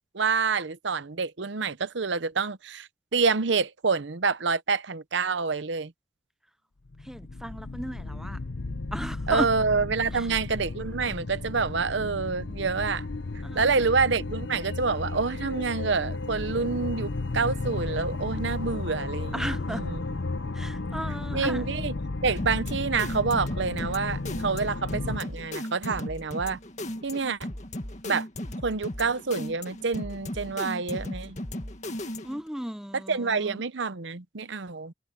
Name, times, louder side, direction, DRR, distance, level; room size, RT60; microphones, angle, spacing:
voice 1, 0.1-5.9 9.3-13.1 13.5-20.0 21.3-21.9 22.2-26.6 27.0-27.4 28.0-28.3 28.6-31.4 32.9-34.9, right 4 dB, 65° right, 0.8 m, -27 dB
sound 1, 6.9-25.2, left 3 dB, 60° left, 0.8 m, -34 dB
voice 2, 7.0-8.4 8.9-9.5 10.1-10.3 13.4-13.8 19.3-19.8 20.5-21.6 32.2-33.6, equal, 5° right, 0.5 m, -35 dB
sound 2, 22.4-32.5, left 1 dB, 35° left, 2.0 m, -36 dB
head